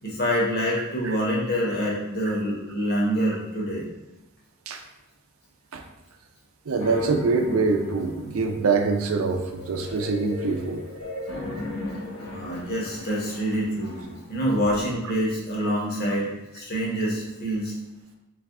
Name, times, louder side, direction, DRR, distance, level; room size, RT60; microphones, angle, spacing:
voice 1, 0.0-3.9 12.3-14.0 14.3-17.7, equal, 50° left, -3 dB, 1.2 m, -26 dB
voice 2, 6.7-10.8, right 4 dB, 85° right, 5 dB, 0.5 m, -24 dB
sound 1, 6.8-14.9, left 2 dB, 90° left, 1.0 m, -37 dB
3.4 x 3.3 x 3.7 m, 0.97 s
head